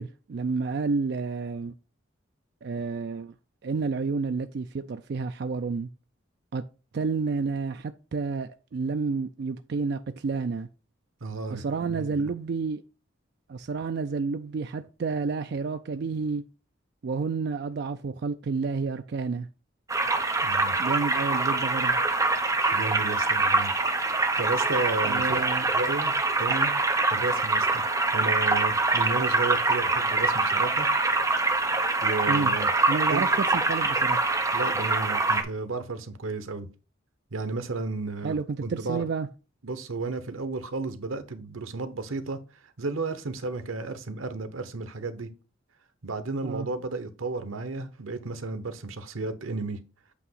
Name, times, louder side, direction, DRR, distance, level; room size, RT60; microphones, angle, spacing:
voice 1, 0.0-1.7 2.6-3.3 3.6-5.9 6.5-6.6 6.9-10.7 11.5-12.8 13.5-16.4 17.0-19.5 20.8-22.0 25.0-25.7 32.3-32.5 32.9-34.2 38.2-39.3 46.4-46.7, right 4 dB, 55° right, 0.3 m, -30 dB
voice 2, 11.2-12.3 20.4-20.8 22.7-23.7 24.4-25.5 25.7-26.7 27.1-30.9 32.0-32.7 33.1-33.2 34.5-36.7 37.3-39.0 39.6-42.4 42.8-45.3 46.0-49.8, right 3 dB, 90° right, 0.9 m, -33 dB
sound 1, 19.9-35.4, right 3 dB, 15° right, 0.7 m, -24 dB
8.3 x 2.8 x 5.5 m
head